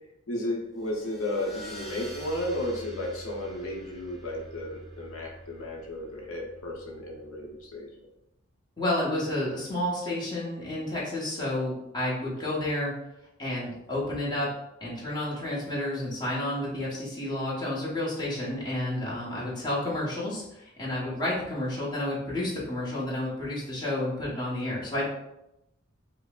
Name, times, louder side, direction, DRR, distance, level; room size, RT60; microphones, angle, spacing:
voice 1, 0.3-7.9, left 1 dB, 80° left, -1 dB, 0.7 m, -33 dB
sound 1, 0.7-7.8, equal, ahead, 0.6 m, -46 dB
voice 2, 8.8-12.9 13.4-14.5 14.8-25.1, left 1 dB, 20° left, -6 dB, 1.0 m, -30 dB
5.2 x 2.0 x 2.4 m, 0.86 s
head